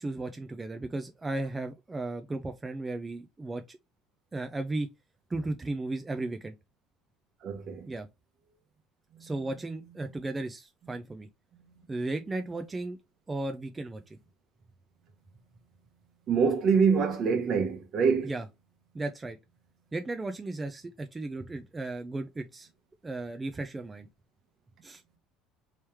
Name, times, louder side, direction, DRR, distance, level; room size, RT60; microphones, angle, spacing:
voice 1, 0.0-3.8 4.3-4.9 5.3-6.5 7.9-8.1 9.2-11.3 11.9-13.0 13.3-14.2 18.2-18.4 18.9-19.4 19.9-22.7 23.0-24.1 24.8-25.0, right 2 dB, 15° right, 0.4 m, -35 dB
voice 2, 7.4-7.9 9.2-9.3 10.0-10.2 10.8-10.9 11.5-11.8 16.3-18.3, right 5 dB, 50° right, 1.0 m, -26 dB
3.3 x 3.2 x 3.0 m
supercardioid pair, 105°, 0 cm